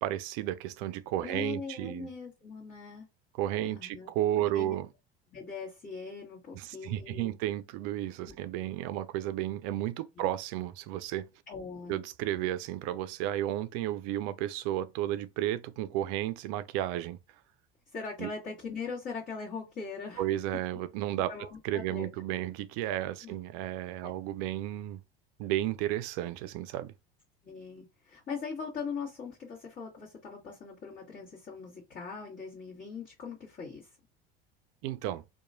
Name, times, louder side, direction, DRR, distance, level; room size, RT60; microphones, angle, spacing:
voice 1, 0.0-2.1 3.3-4.9 6.5-11.3 11.9-17.2 18.2-18.3 20.2-21.3 21.6-25.0 25.4-26.9 34.8-35.2, right 13 dB, 55° right, 0.4 m, -33 dB
voice 2, 1.2-3.0 3.6-4.1 4.4-4.7 5.3-7.3 8.2-8.3 10.2-10.3 11.5-12.0 17.9-20.2 21.3-22.1 23.2-23.3 24.0-24.1 27.4-33.9, left 5 dB, 35° left, 1.4 m, -41 dB
2.9 x 2.3 x 2.5 m
hypercardioid pair, 80°, 31 cm